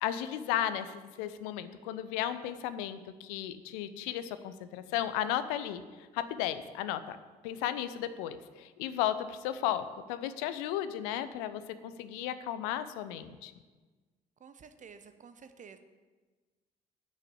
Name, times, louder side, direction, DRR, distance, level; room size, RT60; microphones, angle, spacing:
voice 1, 0.0-5.8 6.1-7.2 7.4-13.5, left 11 dB, 65° left, 13 dB, 0.7 m, -34 dB
voice 2, 14.4-15.8, right 6 dB, 35° right, 9 dB, 0.9 m, -51 dB
8.3 x 6.4 x 8.1 m, 1.3 s
figure-of-eight pair, 45°, 21 cm